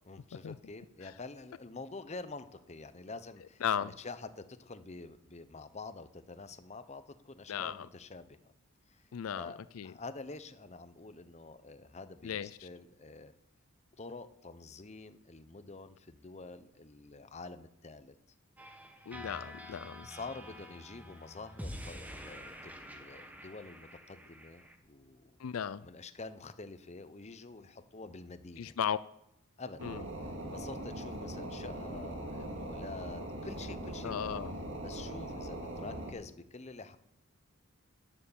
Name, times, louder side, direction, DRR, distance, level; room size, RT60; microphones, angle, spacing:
voice 1, 0.0-8.5 8.9-9.0 9.3-13.3 14.0-18.2 20.0-25.4 25.8-28.7 29.6-29.9 30.3-34.4 34.8-37.0, left 3 dB, 30° left, 11 dB, 0.8 m, -47 dB
voice 2, 3.6-3.9 7.5-7.9 9.1-9.9 12.2-12.7 19.1-20.1 25.4-25.8 28.6-29.0 29.8-30.0 34.0-34.5, left 8 dB, 80° left, 16 dB, 0.4 m, -36 dB
sound 1, 18.6-24.8, equal, 5° right, 1.2 m, -48 dB
sound 2, 29.8-36.1, right 1 dB, 60° right, 2.3 m, -41 dB
11.0 x 9.4 x 7.3 m, 0.80 s
head